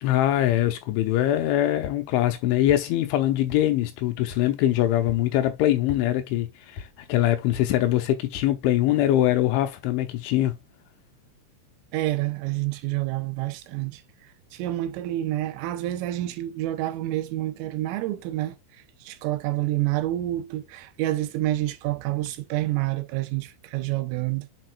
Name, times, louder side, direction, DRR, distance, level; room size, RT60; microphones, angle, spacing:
voice 1, 0.0-10.6, left 13 dB, 80° left, 3.1 m, -23 dB
sound 1, 1.8-2.0 2.7-2.8 3.5-3.6 4.3-4.4 5.1-5.2 5.9-6.0 6.8-6.9 7.5-7.7 8.3-8.5, left 6 dB, 50° left, 2.9 m, -38 dB
voice 2, 11.9-14.0 14.5-18.6 19.0-24.5, right 15 dB, 85° right, 3.6 m, -28 dB
7.7 x 6.0 x 2.4 m
omnidirectional pair, 5.8 m